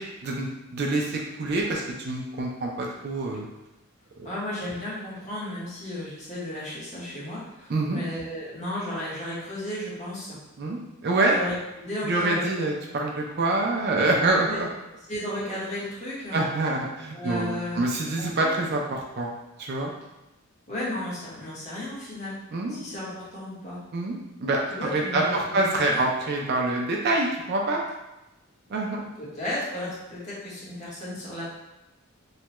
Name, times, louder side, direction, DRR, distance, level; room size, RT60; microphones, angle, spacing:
voice 1, 0.0-3.5 4.2-4.3 7.7-8.0 10.6-11.4 12.0-14.7 16.3-19.3 19.6-19.9 22.5-22.8 23.9-27.8 28.7-29.0, right 2 dB, 50° right, -1 dB, 0.4 m, -26 dB
voice 2, 4.2-10.4 11.3-12.4 13.9-14.1 14.4-14.6 15.1-16.4 17.1-17.9 18.2-18.5 20.7-22.4 22.7-23.8 24.7-25.6 25.9-26.0 29.2-31.4, left 1 dB, 30° left, -8 dB, 1.0 m, -34 dB
3.2 x 2.2 x 2.9 m, 0.98 s
head